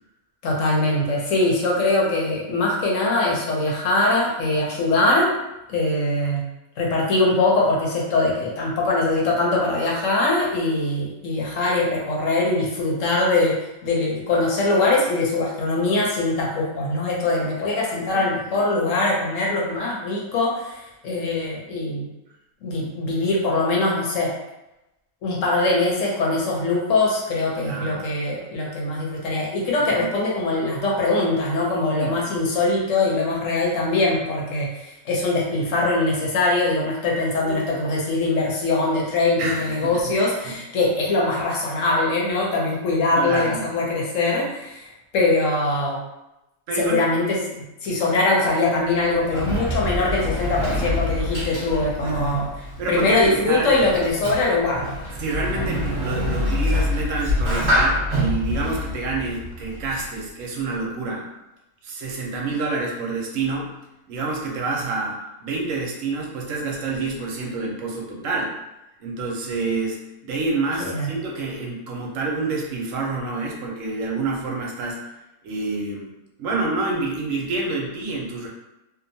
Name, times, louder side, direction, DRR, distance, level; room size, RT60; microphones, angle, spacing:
voice 1, 0.4-5.3 5.7-6.5 6.8-13.6 13.8-22.1 22.6-24.3 25.2-44.9 45.1-46.0 46.8-47.4 47.8-54.9 70.8-71.1, left 2 dB, 65° left, -3 dB, 1.0 m, -22 dB
voice 2, 18.1-18.6 27.6-28.1 32.0-32.1 37.3-37.7 39.4-40.1 40.4-40.6 43.2-43.7 46.7-47.1 48.1-48.2 52.0-52.4 52.8-53.7 55.2-61.3 61.8-63.7 64.1-68.5 69.0-75.0 75.4-76.1 76.4-78.5, right 3 dB, 70° right, -1 dB, 0.9 m, -28 dB
Sliding door, 48.8-60.2, left 1 dB, 30° right, 0.9 m, -26 dB
2.7 x 2.2 x 2.6 m, 0.94 s
omnidirectional pair, 1.6 m